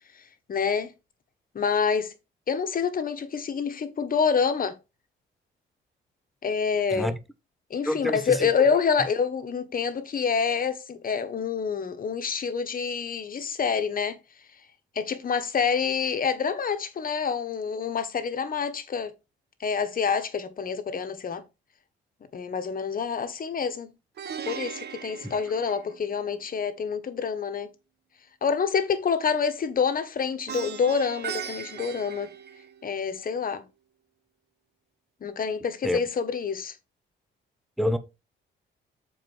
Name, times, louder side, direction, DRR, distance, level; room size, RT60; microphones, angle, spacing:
voice 1, 0.5-0.9 1.5-2.1 2.5-4.8 6.4-7.1 7.7-14.2 14.9-19.1 19.6-21.4 22.3-23.9 24.4-27.7 28.4-32.3 32.8-33.6 35.2-36.7, left 6 dB, 45° left, 1.4 m, -27 dB
voice 2, 7.9-8.4 35.8-36.0 37.8-38.0, left 1 dB, ahead, 1.0 m, -26 dB
Plucked string instrument, 24.2-26.3 30.5-33.1, right 8 dB, 55° right, 1.0 m, -38 dB
7.5 x 4.6 x 4.6 m
cardioid pair, 90°, 20 cm